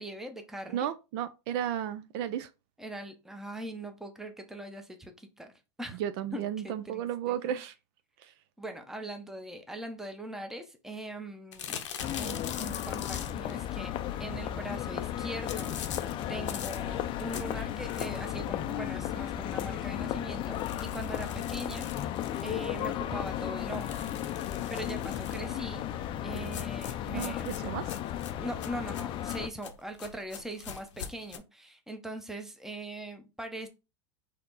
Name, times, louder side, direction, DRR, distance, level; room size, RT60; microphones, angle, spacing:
voice 1, 0.0-0.9 2.8-5.5 5.8-6.0 6.3-7.6 8.6-11.9 12.2-13.9 14.2-21.9 22.4-24.1 24.5-25.8 26.2-27.5 28.4-33.7, right 1 dB, 5° right, 0.7 m, -41 dB
voice 2, 0.7-2.5 5.9-7.7 8.2-8.3 27.1-27.9, right 10 dB, 55° right, 0.5 m, -34 dB
sound 1, 11.5-13.6 15.5-18.4 18.8-18.9 19.3-19.4 19.7-19.8 20.4-22.9 23.7-25.5 26.3-31.4, left 8 dB, 90° left, 0.8 m, -43 dB
sound 2, 12.0-29.5, left 11 dB, 35° left, 0.4 m, -35 dB
4.2 x 2.9 x 3.9 m
supercardioid pair, 125°, 15 cm